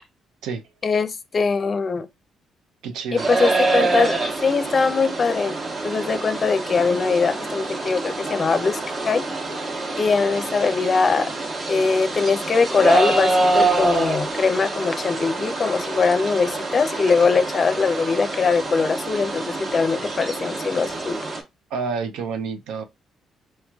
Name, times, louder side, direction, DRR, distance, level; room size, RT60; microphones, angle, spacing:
voice 1, 0.8-2.1 3.1-8.8 9.0-9.2 10.0-11.3 11.7-21.2, left 4 dB, 40° left, 0.5 m, -21 dB
voice 2, 2.8-3.3 21.7-22.8, right 5 dB, 90° right, 0.5 m, -29 dB
sound 1, 3.2-21.4, right 3 dB, 50° right, 1.1 m, -26 dB
4.5 x 3.0 x 2.3 m
cardioid pair, 90°, 0 cm